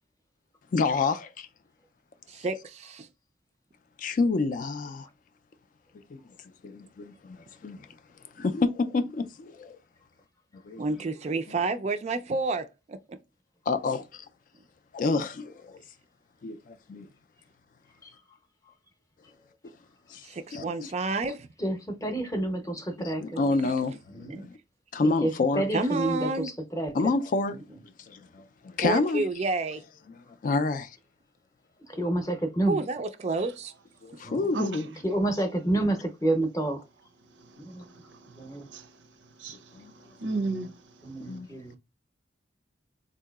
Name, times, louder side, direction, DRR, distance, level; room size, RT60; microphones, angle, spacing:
voice 1, 0.7-1.5 4.0-5.1 6.1-6.2 6.6-7.9 8.4-9.8 10.6-11.0 13.7-14.3 14.9-15.8 16.4-17.1 19.6-19.7 20.1-20.3 20.5-20.9 23.0-24.5 24.9-25.6 26.9-27.8 28.1-29.3 30.4-31.0 34.0-34.9 39.7-39.9 41.3-41.5, left 3 dB, 45° left, 0.3 m, -28 dB
voice 2, 2.3-3.1 10.8-13.2 20.2-21.5 24.3-24.5 25.7-26.5 28.8-29.8 32.7-33.7, right 3 dB, 35° right, 0.3 m, -30 dB
voice 3, 21.6-23.4 24.1-24.5 25.0-26.9 31.9-32.8 34.2-34.5 35.0-36.8 37.6-37.8 38.4-38.7 41.0-41.8, right 1 dB, 20° left, 0.7 m, -29 dB
voice 4, 37.4-38.9 39.4-41.4, right 3 dB, 85° right, 0.6 m, -36 dB
3.8 x 2.7 x 2.3 m
head